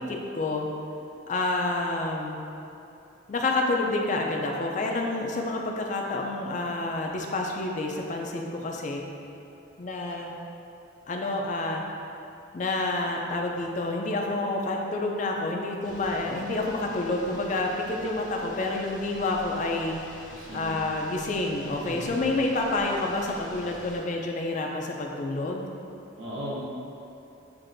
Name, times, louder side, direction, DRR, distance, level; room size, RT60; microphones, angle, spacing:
voice 1, 0.1-0.7 1.3-2.4 3.3-9.0 9.8-10.3 11.1-11.8 12.5-20.0 20.5-25.6, left 2 dB, 40° left, 1 dB, 0.3 m, -28 dB
sound 1, 15.8-24.0, left 1 dB, 70° left, 0.9 m, -47 dB
voice 2, 20.3-20.8 21.8-22.3 26.2-26.6, equal, 80° right, -6 dB, 1.0 m, -37 dB
7.3 x 2.5 x 2.5 m, 2.8 s
head